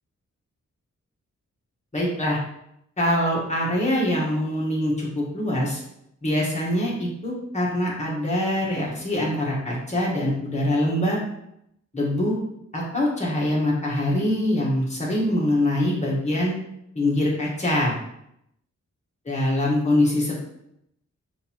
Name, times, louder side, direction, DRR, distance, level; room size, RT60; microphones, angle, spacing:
voice 1, 1.9-2.4 3.0-5.8 6.2-11.2 11.9-12.4 12.7-16.5 16.9-18.0 19.3-20.4, left 1 dB, 25° left, -5 dB, 1.4 m, -24 dB
6.4 x 2.7 x 3.0 m, 0.77 s
wide cardioid pair, 135°, 29 cm